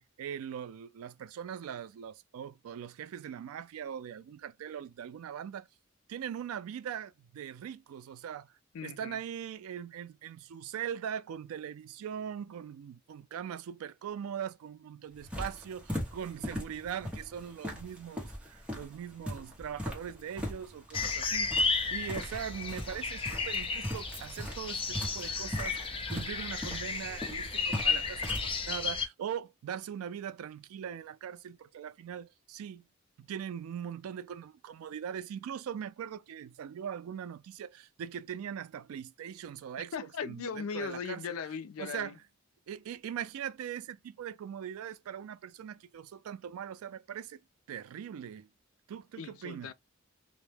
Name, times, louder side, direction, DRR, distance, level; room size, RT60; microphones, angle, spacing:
voice 1, 0.0-5.7 6.1-8.5 8.8-32.8 33.2-41.2 41.8-42.1 42.7-47.4 47.7-48.5 48.9-49.7, right 8 dB, 85° right, 0.3 m, -41 dB
voice 2, 8.7-9.2 39.9-42.2 49.2-49.7, left 6 dB, 80° left, 0.4 m, -38 dB
sound 1, 15.1-28.5, equal, 5° right, 0.8 m, -40 dB
sound 2, 20.9-29.1, left 4 dB, 25° left, 0.5 m, -33 dB
2.1 x 2.0 x 3.1 m
head